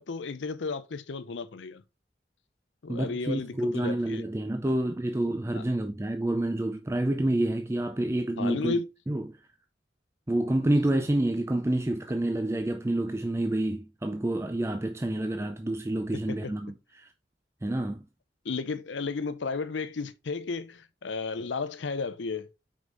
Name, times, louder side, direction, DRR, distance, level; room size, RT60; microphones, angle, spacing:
voice 1, 0.0-1.8 2.8-4.2 5.5-5.6 8.4-8.8 16.1-16.5 18.4-22.5, left 4 dB, 80° left, 0.6 m, -33 dB
voice 2, 2.9-8.8 9.1-9.4 10.3-17.1 17.6-18.0, right 1 dB, 15° right, 0.4 m, -28 dB
5.3 x 4.8 x 3.8 m
head